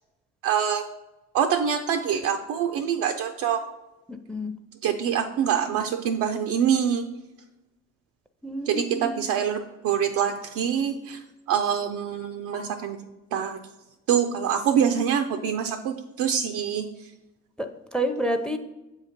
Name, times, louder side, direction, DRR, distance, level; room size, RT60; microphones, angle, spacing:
voice 1, 0.4-0.9 1.3-3.6 4.8-7.0 8.7-11.2 11.5-13.0 13.3-13.6 14.1-16.9, right 8 dB, 75° right, 5 dB, 0.5 m, -25 dB
voice 2, 4.1-4.5 8.4-9.2 17.6-18.6, equal, ahead, 9 dB, 0.5 m, -29 dB
6.9 x 2.8 x 5.1 m, 0.97 s
supercardioid pair, 55°, 31 cm